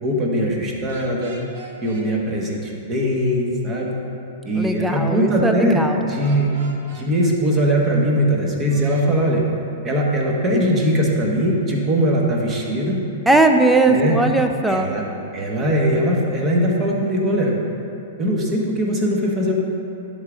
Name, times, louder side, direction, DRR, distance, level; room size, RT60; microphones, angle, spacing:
voice 1, 0.0-1.3 1.8-3.9 4.4-6.5 6.9-9.4 9.8-13.0 13.9-14.1 14.7-15.0 15.3-17.6 18.2-19.5, equal, 25° right, -1 dB, 1.4 m, -20 dB
sound 1, 0.9-2.1 6.2-7.1 8.7-9.1, right 2 dB, 60° right, 1.3 m, -41 dB
voice 2, 4.6-6.0 13.3-14.9, right 2 dB, 5° right, 5 dB, 0.5 m, -18 dB
11.0 x 3.7 x 5.1 m, 2.8 s
hypercardioid pair, 120°, 0 cm